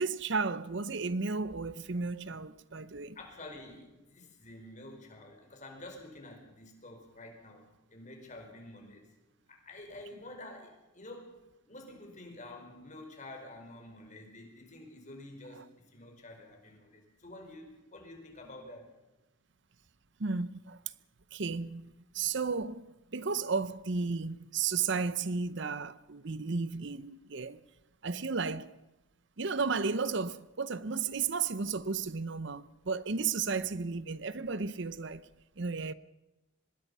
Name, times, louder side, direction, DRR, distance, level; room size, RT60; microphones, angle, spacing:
voice 1, 0.0-3.2 15.5-15.6 20.2-20.8 21.3-22.8 23.1-27.6 28.0-28.8 29.4-35.3 35.6-35.9, right 4 dB, 60° right, 0.8 m, -33 dB
voice 2, 3.1-9.1 9.5-18.9, left 2 dB, 40° left, 5.1 m, -49 dB
25.5 x 20.5 x 5.6 m
head